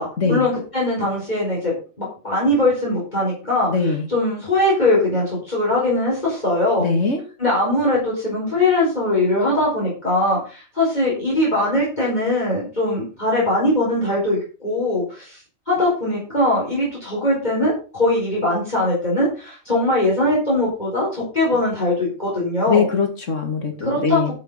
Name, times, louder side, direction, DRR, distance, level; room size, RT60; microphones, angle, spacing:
voice 1, 0.0-6.8 7.4-15.4 15.7-22.9 23.8-24.3, left 1 dB, 35° left, -5 dB, 5.0 m, -21 dB
voice 2, 3.7-4.1 6.8-7.2 22.7-24.3, left 5 dB, 85° left, 5 dB, 2.6 m, -21 dB
12.5 x 6.1 x 5.7 m, 0.35 s
omnidirectional pair, 1.3 m